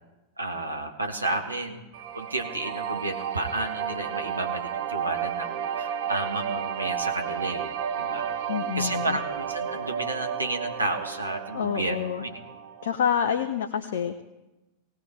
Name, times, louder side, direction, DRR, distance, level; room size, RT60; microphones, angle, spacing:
voice 1, 0.4-1.8 2.1-8.3 8.7-12.4, right 2 dB, 80° right, 4 dB, 1.5 m, -32 dB
sound 1, 1.9-13.0, right 8 dB, 55° right, 1.1 m, -32 dB
voice 2, 8.5-9.2 11.5-12.2 12.8-14.2, left 8 dB, 60° left, 6 dB, 0.8 m, -27 dB
18.5 x 18.5 x 3.6 m, 1.0 s
figure-of-eight pair, 90°, 0 cm